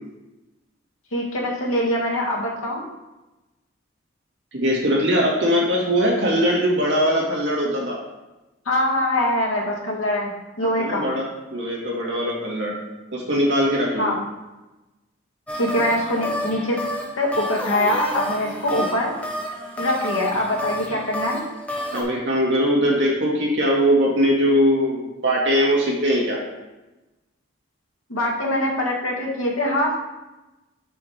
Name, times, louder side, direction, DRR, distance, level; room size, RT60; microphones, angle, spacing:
voice 1, 1.1-2.8 8.6-10.3 10.6-11.1 14.0-14.2 15.5-16.8 17.2-19.1 19.8-21.4 28.1-30.0, left 1 dB, 80° left, -2 dB, 1.7 m, -23 dB
voice 2, 4.5-8.0 10.8-11.2 11.5-12.7 13.1-14.1 21.9-26.4, equal, 60° right, -3 dB, 2.2 m, -21 dB
sound 1, 15.5-22.0, equal, 5° left, 0.9 m, -30 dB
5.7 x 4.9 x 5.8 m, 1.0 s
head